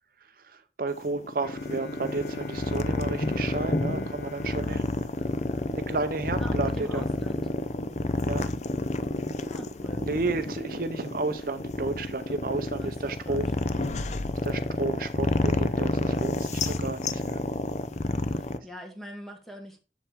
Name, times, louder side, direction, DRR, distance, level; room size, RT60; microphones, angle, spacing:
voice 1, 0.2-4.8 5.7-7.0 8.3-8.5 10.0-13.5 14.4-17.5, right 3 dB, 50° right, 9 dB, 0.6 m, -32 dB
sound 1, 0.9-18.6, left 2 dB, 40° left, 0.5 m, -29 dB
Bowed string instrument, 1.4-6.7, left 2 dB, 70° left, 1.3 m, -44 dB
voice 2, 4.6-5.0 6.4-7.5 9.5-10.1 12.8-13.4 18.3-19.8, equal, ahead, 3 dB, 1.5 m, -43 dB
7.3 x 7.2 x 3.5 m, 0.32 s
head